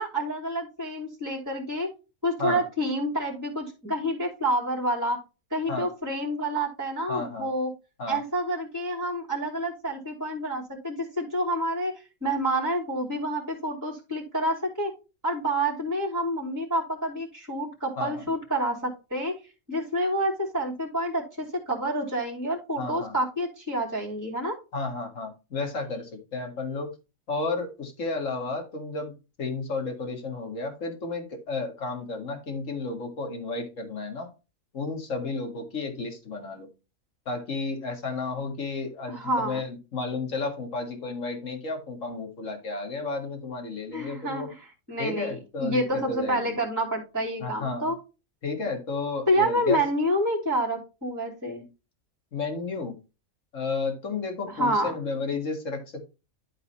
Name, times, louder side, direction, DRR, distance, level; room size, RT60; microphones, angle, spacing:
voice 1, 0.0-1.9 2.2-5.2 5.5-7.7 8.1-11.9 12.2-14.9 15.2-19.3 19.7-24.5 39.1-39.6 43.9-44.6 44.9-48.0 49.3-51.6 54.5-54.9, right 1 dB, 15° right, -3 dB, 2.6 m, -28 dB
voice 2, 7.1-7.5 8.0-8.2 18.0-18.2 22.8-23.1 24.7-26.9 27.3-34.3 34.7-36.7 37.3-44.5 45.0-46.6 47.4-47.9 48.4-49.8 52.3-53.0 53.5-56.1, left 3 dB, 65° left, 4 dB, 2.2 m, -32 dB
11.5 x 4.1 x 4.1 m, 0.29 s
omnidirectional pair, 1.4 m